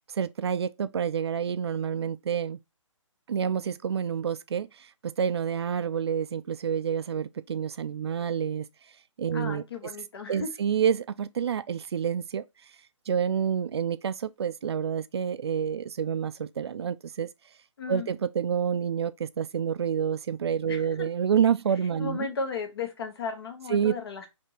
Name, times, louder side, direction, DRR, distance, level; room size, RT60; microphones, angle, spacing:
voice 1, 0.1-2.6 3.3-4.7 5.0-8.7 9.2-9.9 10.3-12.4 13.1-17.3 17.9-22.3 23.7-24.0, right 7 dB, 55° right, 0.4 m, -28 dB
voice 2, 9.3-10.5 17.8-18.1 20.7-20.8 22.0-24.3, left 4 dB, 50° left, 1.0 m, -35 dB
3.5 x 2.8 x 4.2 m
figure-of-eight pair, 145°, 17 cm